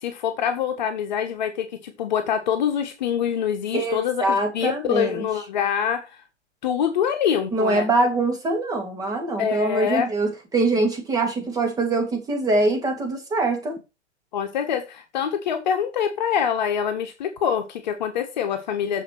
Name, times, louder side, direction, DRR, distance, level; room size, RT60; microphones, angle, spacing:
voice 1, 0.0-6.1 6.6-7.9 9.4-10.1 14.3-19.0, left 8 dB, 40° left, 1.7 m, -25 dB
voice 2, 3.7-5.2 7.5-13.8, right 2 dB, 10° right, 2.6 m, -23 dB
7.2 x 6.5 x 6.1 m
figure-of-eight pair, 120°, 35 cm